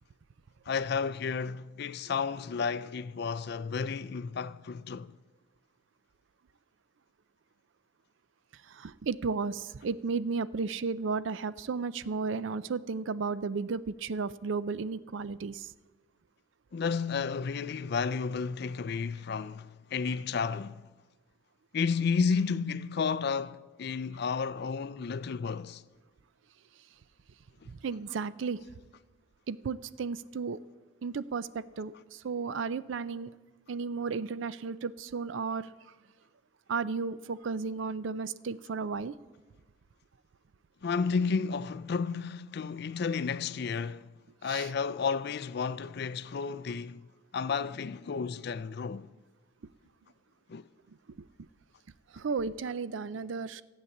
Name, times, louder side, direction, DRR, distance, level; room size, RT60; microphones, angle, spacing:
voice 1, 0.7-5.2 16.7-20.8 21.7-25.8 40.8-44.2 44.4-47.1 47.3-49.1 50.5-50.6, left 5 dB, 50° left, 0.4 m, -32 dB
voice 2, 8.6-15.7 27.7-28.6 29.5-30.6 31.0-33.3 33.7-35.7 36.7-39.2 44.5-44.7 52.1-53.6, right 5 dB, 65° right, 0.4 m, -34 dB
14.0 x 8.2 x 7.2 m
head